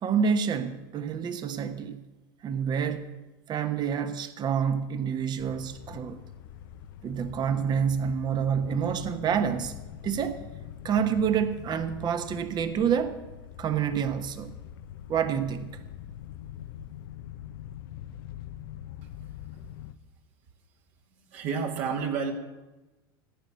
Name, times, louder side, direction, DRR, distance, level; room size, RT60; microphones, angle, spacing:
voice 1, 0.0-2.0 2.4-3.1 3.5-6.2 7.0-9.8 10.0-10.4 10.8-13.2 13.6-14.5 15.1-15.8, right 7 dB, 35° right, 1.3 m, -28 dB
sound 1, 5.4-19.9, left 11 dB, 70° left, 0.7 m, -44 dB
voice 2, 21.1-22.3, right 6 dB, 60° right, 2.4 m, -31 dB
15.5 x 9.0 x 7.5 m
hypercardioid pair, 95°, 12 cm